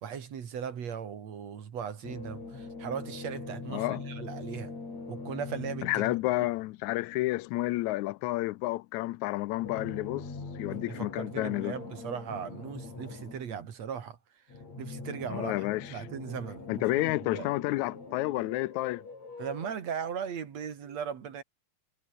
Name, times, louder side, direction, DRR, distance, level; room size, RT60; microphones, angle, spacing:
voice 1, 0.0-4.7 5.1-6.2 10.7-14.2 14.8-17.5 19.4-21.4, right 7 dB, 60° right, 3.4 m, -38 dB
sound 1, 2.0-6.6 9.5-13.7 14.5-19.7, left 3 dB, 65° left, 7.6 m, -42 dB
voice 2, 3.7-4.0 5.8-10.3 10.6-11.8 15.3-16.0 16.7-19.0, left 19 dB, 80° left, 2.0 m, -30 dB
omnidirectional pair, 3.4 m